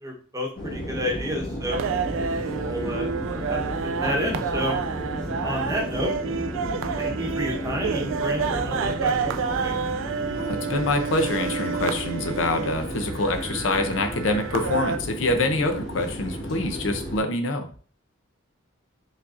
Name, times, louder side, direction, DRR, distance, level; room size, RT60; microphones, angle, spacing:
voice 1, 0.0-1.8 2.6-3.6 4.0-4.8 5.4-6.1 7.0-9.7, equal, 15° right, 0 dB, 1.0 m, -30 dB
sound 1, 0.5-17.2, equal, 50° left, 1.4 m, -33 dB
sound 2, 1.7-15.0, right 6 dB, 70° right, 0.3 m, -29 dB
voice 2, 10.4-17.7, left 2 dB, 70° left, 6 dB, 0.6 m, -25 dB
5.0 x 4.0 x 2.5 m, 0.42 s
head